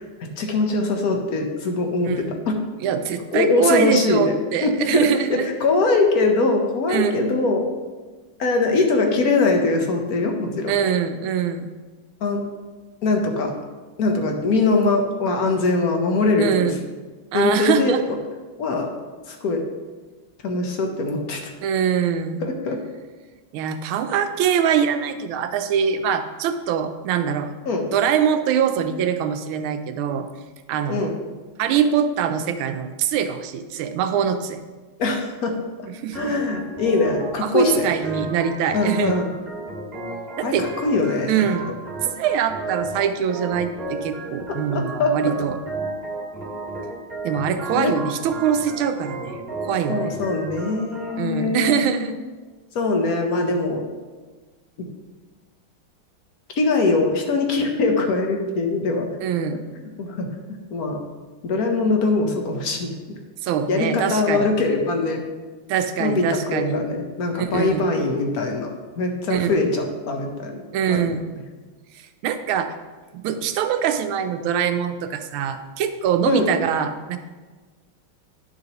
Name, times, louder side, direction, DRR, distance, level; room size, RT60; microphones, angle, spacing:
voice 1, 0.0-2.6 3.3-4.3 4.6-7.7 8.4-10.7 12.2-12.4 13.0-13.5 14.0-16.7 17.3-17.9 18.6-18.9 19.3-19.6 20.4-21.4 22.4-22.8 27.7-27.8 30.9-31.1 35.0-35.6 36.1-37.9 38.7-39.3 40.4-41.5 42.0-42.1 44.7-45.3 47.7-47.9 49.9-51.8 52.7-53.8 54.8-54.9 56.6-59.1 60.0-61.0 61.4-63.2 63.7-65.2 66.0-70.6 70.9-71.1 76.2-76.5, left 3 dB, 55° left, 3 dB, 1.1 m, -22 dB
voice 2, 2.0-2.4 2.8-5.5 6.9-7.2 10.7-11.7 16.4-16.8 17.3-18.0 21.6-22.5 23.5-27.5 27.9-30.3 30.7-31.1 31.6-34.6 36.0-36.3 37.4-39.2 40.4-40.7 41.3-41.7 42.1-45.6 47.2-50.1 51.2-52.1 59.2-59.6 63.4-64.5 65.7-66.8 67.4-67.9 69.3-69.7 70.7-71.3 72.2-72.7 73.1-77.2, right 8 dB, 80° right, 8 dB, 1.4 m, -23 dB
Organ, 36.1-51.2, right 2 dB, 30° right, 1.5 m, -33 dB
10.0 x 6.7 x 3.0 m, 1.3 s
omnidirectional pair, 2.4 m